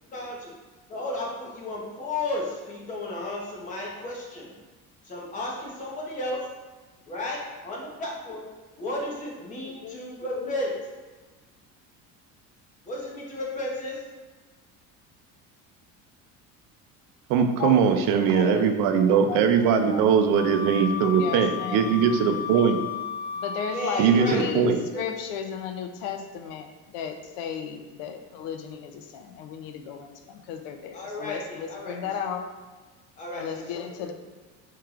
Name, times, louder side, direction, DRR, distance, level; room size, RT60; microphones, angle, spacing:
voice 1, 0.1-0.5 0.9-4.5 5.0-6.4 7.1-8.4 8.8-10.7 12.8-14.0 23.7-24.4 24.9-25.0 30.9-32.0 33.2-33.8, left 1 dB, 20° left, -3 dB, 0.9 m, -33 dB
voice 2, 9.6-10.0 10.4-10.5 17.3-17.8 18.1-18.7 19.1-19.4 19.8-20.2 21.0-21.9 23.3-24.7 25.0-26.7 26.9-32.5 33.3-34.1, left 8 dB, 75° left, 6 dB, 0.6 m, -34 dB
voice 3, 17.3-22.8 24.0-24.8, right 7 dB, 70° right, 6 dB, 0.6 m, -21 dB
Wind instrument woodwind instrument, 20.3-24.4, left 7 dB, 55° left, 1.2 m, -34 dB
4.7 x 4.6 x 2.4 m, 1.3 s
cardioid pair, 160°, 34 cm